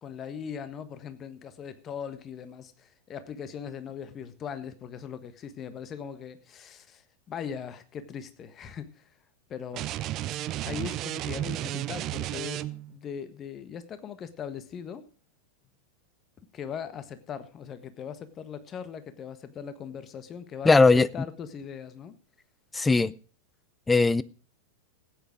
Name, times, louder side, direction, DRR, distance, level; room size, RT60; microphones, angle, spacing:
voice 1, 0.0-9.1 9.5-9.9 10.6-15.0 16.5-22.2, left 7 dB, 30° left, 1.4 m, -40 dB
sound 1, 9.7-13.0, right 14 dB, 35° right, 0.6 m, -33 dB
voice 2, 20.6-21.1 22.7-23.1 23.9-24.2, left 3 dB, 10° left, 0.5 m, -19 dB
15.5 x 9.1 x 5.0 m
figure-of-eight pair, 90°, 0 cm